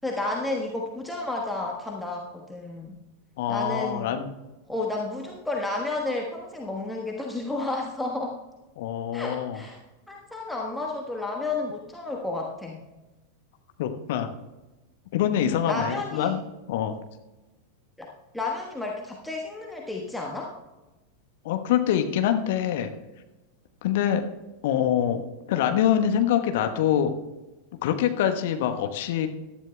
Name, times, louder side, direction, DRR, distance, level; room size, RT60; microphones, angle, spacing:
voice 1, 0.0-3.0 3.5-4.1 4.7-8.4 9.1-9.8 10.1-12.8 15.3-16.3 18.0-18.1 18.3-20.5, left 2 dB, 5° left, -1 dB, 1.3 m, -31 dB
voice 2, 3.4-4.3 8.8-9.6 13.8-14.3 15.1-16.4 16.7-17.0 21.4-22.9 23.8-24.2 24.6-25.2 25.5-27.1 27.8-29.3, left 10 dB, 50° left, 6 dB, 1.1 m, -24 dB
18.0 x 12.5 x 2.2 m, 1.1 s
figure-of-eight pair, 90°, 0 cm